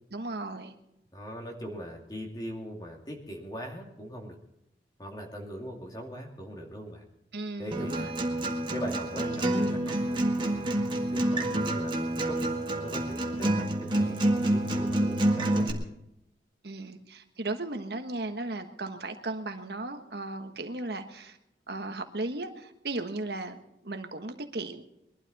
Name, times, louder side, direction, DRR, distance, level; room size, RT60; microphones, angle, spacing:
voice 1, 0.1-0.7 7.3-8.1 16.6-21.4 21.7-24.8, right 2 dB, 70° right, 7 dB, 1.4 m, -36 dB
voice 2, 1.1-4.4 5.0-7.0 7.6-8.1 8.7-10.7 11.1-12.4 12.7-15.8, equal, 20° left, 1 dB, 2.5 m, -40 dB
Acoustic guitar, 7.7-15.7, right 1 dB, 25° right, 1.8 m, -28 dB
22.0 x 12.0 x 4.2 m, 0.83 s
head